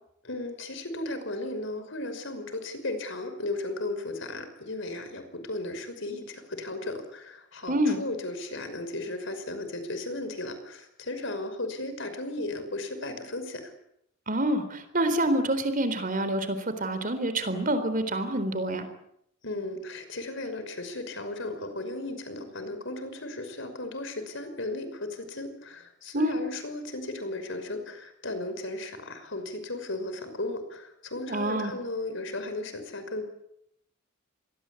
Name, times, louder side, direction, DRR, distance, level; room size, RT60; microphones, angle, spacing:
voice 1, 0.2-13.7 19.4-33.2, left 2 dB, 60° left, 9 dB, 5.7 m, -35 dB
voice 2, 7.7-8.0 14.3-18.9 26.1-26.4 31.3-31.7, right 1 dB, 40° right, 10 dB, 4.0 m, -27 dB
26.5 x 21.0 x 8.6 m, 0.74 s
head